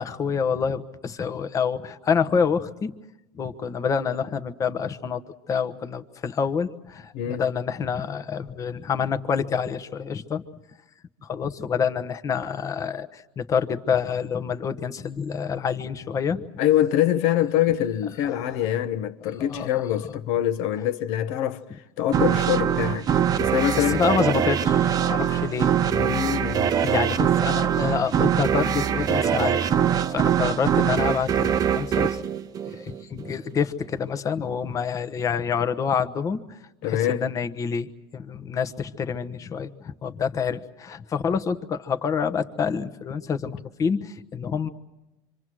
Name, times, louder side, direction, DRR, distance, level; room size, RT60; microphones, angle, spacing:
voice 1, 0.0-2.9 3.4-5.2 5.5-10.4 11.3-16.4 18.3-18.6 19.4-19.7 23.8-25.7 26.8-29.6 30.1-32.2 32.7-44.7, left 6 dB, 30° left, 1.2 m, -27 dB
voice 2, 7.1-7.4 16.6-21.6 22.0-24.0 25.9-26.7 36.8-37.3, left 11 dB, 60° left, 1.2 m, -24 dB
sound 1, 22.1-33.3, right 9 dB, 30° right, 0.7 m, -23 dB
26.5 x 25.5 x 6.3 m
supercardioid pair, 115°, 12 cm